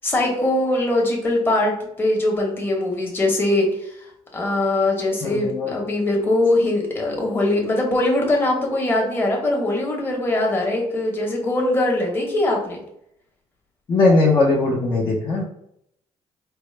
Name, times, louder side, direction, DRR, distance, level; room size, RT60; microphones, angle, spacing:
voice 1, 0.0-3.9 4.3-12.8, left 1 dB, 20° left, -1 dB, 1.1 m, -21 dB
voice 2, 5.2-5.7 13.9-15.4, left 3 dB, 35° left, -4 dB, 0.7 m, -19 dB
4.5 x 2.0 x 3.2 m, 0.73 s
cardioid pair, 125°, 12 cm